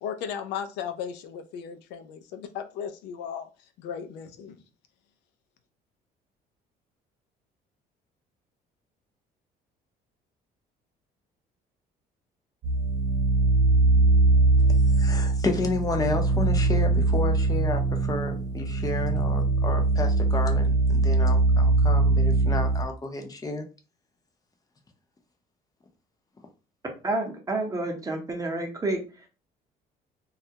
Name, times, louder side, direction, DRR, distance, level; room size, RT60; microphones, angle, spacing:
voice 1, 0.0-3.5 3.8-4.6, left 8 dB, 85° left, 0.4 m, -36 dB
sound 1, 12.6-22.8, right 3 dB, 50° right, 0.9 m, -22 dB
voice 2, 15.0-23.6, left 3 dB, 20° left, 0.6 m, -31 dB
voice 3, 27.0-29.0, right 2 dB, 20° right, 0.7 m, -29 dB
2.3 x 2.1 x 2.7 m
cardioid pair, 110°, 17 cm